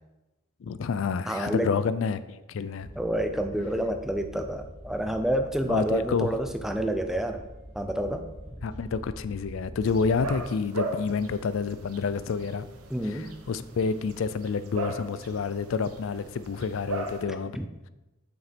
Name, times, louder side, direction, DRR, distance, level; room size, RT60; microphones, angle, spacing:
voice 1, 0.6-2.9 5.7-6.4 8.6-12.7 13.0-17.6, left 5 dB, 65° left, 14 dB, 0.4 m, -29 dB
voice 2, 1.3-1.7 3.0-7.4 7.7-8.3 12.9-13.3 17.6-17.7, right 1 dB, ahead, 6 dB, 0.4 m, -28 dB
sound 1, 2.8-10.4, equal, 20° left, 3.0 m, -44 dB
sound 2, 9.8-17.2, right 2 dB, 90° right, 0.9 m, -39 dB
7.4 x 5.8 x 4.2 m, 1.0 s
head